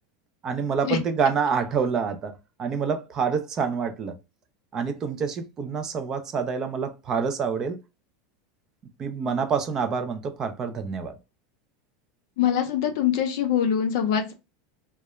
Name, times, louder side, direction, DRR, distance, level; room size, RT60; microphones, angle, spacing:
voice 1, 0.4-2.3 2.6-4.1 4.7-7.8 9.0-11.2, right 6 dB, 20° right, 0.3 m, -27 dB
voice 2, 12.4-14.3, left 9 dB, 55° left, 0.5 m, -23 dB
2.3 x 2.0 x 2.9 m
supercardioid pair, 170°, 2 cm